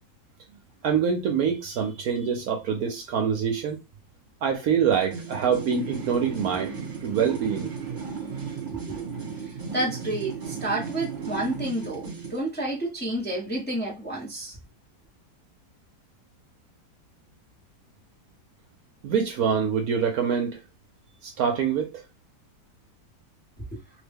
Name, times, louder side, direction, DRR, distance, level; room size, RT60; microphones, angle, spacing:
voice 1, 0.8-3.8 4.4-6.7 7.0-7.7 19.0-20.6 21.2-21.9, right 7 dB, 70° right, 1.0 m, -25 dB
sound 1, 4.9-12.4, right 6 dB, 40° right, 1.4 m, -35 dB
voice 2, 9.4-14.5, right 1 dB, 10° left, 0.7 m, -30 dB
3.2 x 2.1 x 3.4 m
omnidirectional pair, 1.8 m